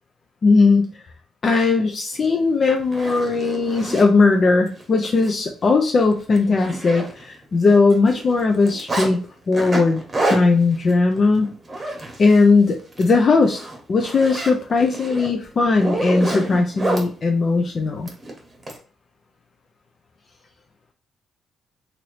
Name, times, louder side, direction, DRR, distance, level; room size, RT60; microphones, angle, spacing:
voice 1, 0.4-0.9 1.4-9.2 9.5-11.5 12.2-13.6 13.9-18.1, left 3 dB, 45° left, 3 dB, 0.4 m, -18 dB
Zipper (clothing), 2.2-2.3 2.8-4.1 4.7-4.8 5.2-5.3 5.7-5.8 6.1-7.4 7.7-9.1 9.5-12.5 12.8-13.1 13.4-17.1 18.1-18.8, right 2 dB, 30° right, 0.9 m, -28 dB
2.9 x 2.5 x 3.1 m, 0.41 s
cardioid pair, 90°, 0 cm